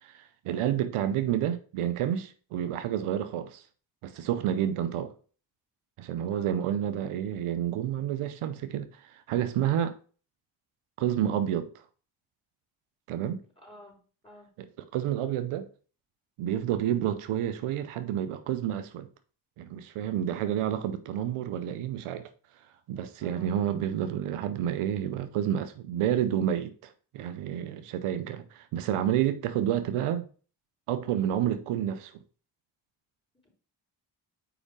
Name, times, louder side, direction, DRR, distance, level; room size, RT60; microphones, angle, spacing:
voice 1, 0.0-3.6 4.0-5.1 6.0-9.9 11.0-11.7 13.1-13.4 14.9-15.7 16.4-19.1 19.6-22.3 22.9-30.2 30.9-32.1, right 10 dB, 85° right, 0.7 m, -29 dB
voice 2, 6.3-6.7 13.6-14.5 20.2-20.5 23.2-23.7 33.4-33.5, left 1 dB, 10° left, 3.7 m, -52 dB
5.0 x 5.0 x 4.9 m
supercardioid pair, 40°, 50 cm